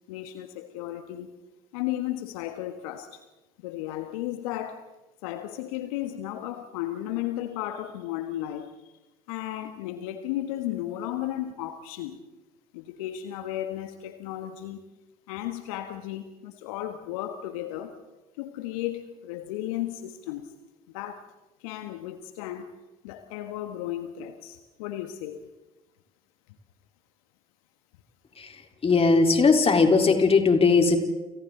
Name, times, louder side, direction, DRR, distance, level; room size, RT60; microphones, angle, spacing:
voice 1, 0.1-1.3 1.7-3.2 3.6-4.8 5.2-8.7 9.3-12.2 12.7-14.8 15.3-18.0 18.4-20.5 20.9-21.3 21.6-22.7 23.0-25.4, left 13 dB, 70° left, 8 dB, 1.6 m, -34 dB
voice 2, 28.8-31.0, left 4 dB, 30° left, 4 dB, 3.9 m, -19 dB
30.0 x 29.0 x 3.9 m, 1.1 s
figure-of-eight pair, 55°, 18 cm